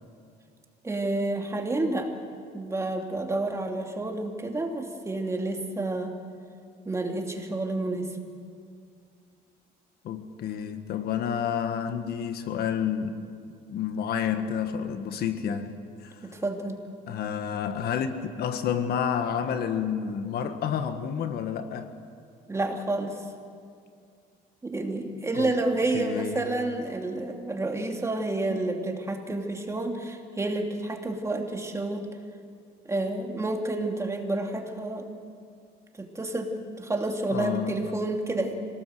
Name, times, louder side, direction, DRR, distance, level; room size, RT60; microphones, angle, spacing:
voice 1, 0.8-2.1 2.5-6.1 6.8-8.2 16.2-16.8 22.5-23.2 24.6-32.1 32.8-35.1 36.0-38.6, right 2 dB, 15° right, 3 dB, 2.8 m, -29 dB
voice 2, 10.0-13.3 13.7-16.1 17.1-21.9 25.3-25.5 25.9-26.4 37.3-37.8, left 8 dB, 70° left, 8 dB, 1.7 m, -30 dB
26.0 x 18.5 x 7.9 m, 2.3 s
cardioid pair, 110°, 17 cm